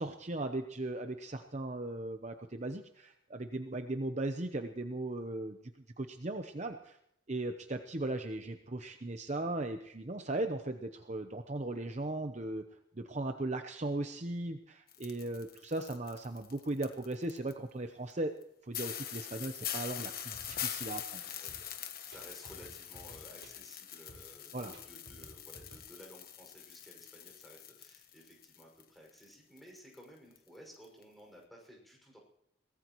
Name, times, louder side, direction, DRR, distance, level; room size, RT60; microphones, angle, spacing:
voice 1, 0.0-7.0 7.3-12.6 13.0-18.3 18.6-21.2 24.5-24.7, right 2 dB, 35° right, 6 dB, 0.8 m, -37 dB
sound 1, 14.9-17.5 18.1-18.2 18.4-18.5 18.7-28.8 29.1-30.0 30.4-30.5 30.8-31.0, left 10 dB, 50° left, 1.2 m, -43 dB
sound 2, 20.3-25.8, right 1 dB, 85° right, 4.4 m, -55 dB
voice 2, 21.2-21.7 22.0-32.2, equal, ahead, -1 dB, 6.0 m, -55 dB
23.0 x 18.5 x 3.1 m, 0.73 s
head